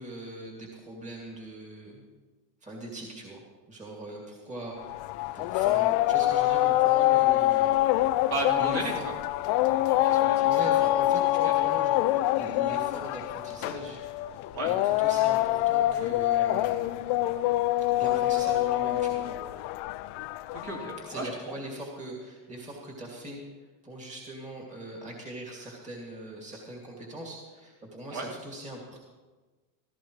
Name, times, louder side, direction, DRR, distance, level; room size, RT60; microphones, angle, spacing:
voice 1, 0.0-2.0 2.6-3.4 3.7-7.8 8.6-9.0 10.3-12.1 12.4-14.0 14.3-16.9 18.0-19.3 21.0-23.4 23.8-29.0, right 1 dB, 15° right, -1 dB, 2.5 m, -41 dB
sound 1, 4.8-21.2, left 16 dB, 55° left, 0.5 m, -25 dB
voice 2, 8.3-9.1 9.6-10.5 11.4-11.7 14.5-14.7 20.5-21.5 28.1-28.3, right 2 dB, 50° right, -2 dB, 3.3 m, -35 dB
16.5 x 14.5 x 3.2 m, 1.3 s
supercardioid pair, 120°, 49 cm